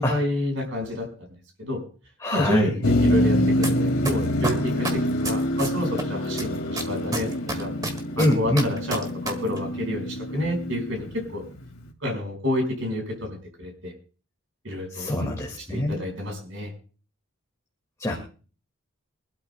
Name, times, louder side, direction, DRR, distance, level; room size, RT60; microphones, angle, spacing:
voice 1, 0.0-1.3 1.6-1.8 2.3-7.7 8.2-11.4 12.0-13.9 14.6-15.3 15.7-16.7, left 1 dB, 60° right, 2 dB, 4.9 m, -29 dB
voice 2, 2.2-2.7 8.2-8.7 14.9-16.0 18.0-18.1, left 1 dB, 15° left, 0 dB, 1.9 m, -24 dB
Motor vehicle (road), 2.8-11.8, equal, 90° left, 2.1 m, -26 dB
sound 1, 3.6-3.7 4.0-6.0 6.4-9.3 9.6-9.7, right 2 dB, 15° right, 1.8 m, -28 dB
24.5 x 12.5 x 2.2 m, 0.38 s
head